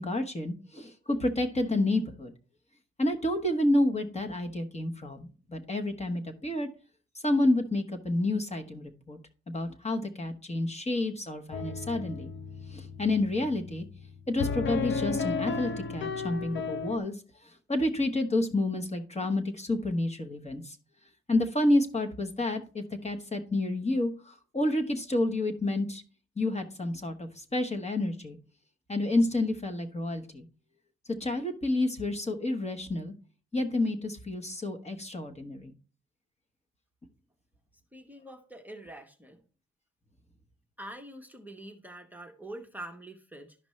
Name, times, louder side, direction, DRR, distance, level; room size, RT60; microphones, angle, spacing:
voice 1, 0.0-2.3 3.0-6.7 7.2-9.2 9.5-12.3 12.7-13.8 14.3-17.2 17.4-20.8 21.3-26.0 26.4-28.4 28.9-30.5 31.2-33.1 33.5-35.7, left 1 dB, 20° left, 4 dB, 1.2 m, -29 dB
sound 1, 11.5-17.0, left 4 dB, 40° left, 0.7 m, -34 dB
voice 2, 37.9-39.4 40.8-43.6, right 1 dB, 5° right, 4 dB, 1.0 m, -45 dB
12.0 x 5.2 x 3.2 m, 0.38 s
cardioid pair, 90°, 30 cm